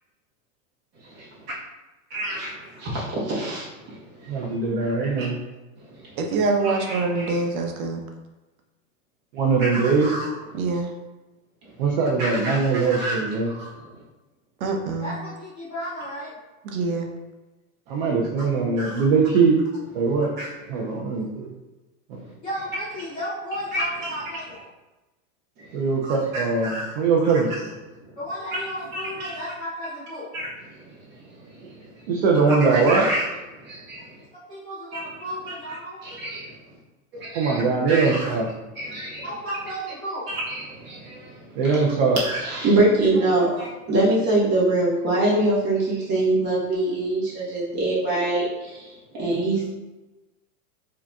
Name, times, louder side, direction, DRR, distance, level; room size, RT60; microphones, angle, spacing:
voice 1, 2.1-4.5 5.8-6.3 6.6-7.5 9.6-10.3 10.6-10.8 11.6-11.8 12.2-13.2 13.4-14.0 17.9-18.1 18.4-18.5 18.8-19.0 20.4-20.9 22.1-22.3 23.7-24.1 25.6-26.9 28.0-28.2 28.5-28.6 28.9-29.3 30.3-32.1 32.5-33.3 33.5-34.2 34.9-35.0 35.5-35.6 36.0-36.8 37.1-37.6 37.9-38.3 38.7-39.2 40.3-41.8 42.2-49.7, right 2 dB, 25° right, -7 dB, 1.2 m, -26 dB
voice 2, 4.3-5.4 9.3-10.1 11.8-13.5 17.9-19.5 19.9-20.3 20.7-21.5 22.1-22.2 25.7-27.5 32.1-33.1 37.3-38.4 41.6-42.2, right 4 dB, 40° right, -1 dB, 0.5 m, -21 dB
voice 3, 6.2-8.0 10.5-10.9 14.6-15.1 16.7-17.1, right 3 dB, 80° right, 2 dB, 0.8 m, -25 dB
voice 4, 15.0-16.4 22.4-24.7 28.2-30.3 34.3-36.0 37.7-38.3 38.6-38.7 39.2-40.3 43.1-43.4, equal, 15° left, -12 dB, 0.4 m, -34 dB
4.7 x 2.8 x 2.3 m, 1.1 s
supercardioid pair, 165°, 42 cm